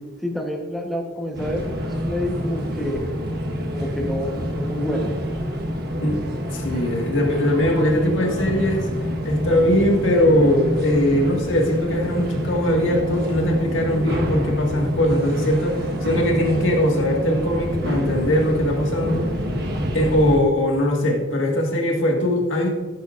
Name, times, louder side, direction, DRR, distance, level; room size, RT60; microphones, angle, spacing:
voice 1, 0.2-3.0 3.7-5.1, left 1 dB, ahead, 1 dB, 1.0 m, -28 dB
sound 1, 1.3-20.4, equal, 55° right, 1.3 m, -27 dB
voice 2, 6.5-8.9 9.2-19.3 19.9-22.7, left 1 dB, 80° left, 1 dB, 1.8 m, -20 dB
14.0 x 9.5 x 2.5 m, 1.4 s
head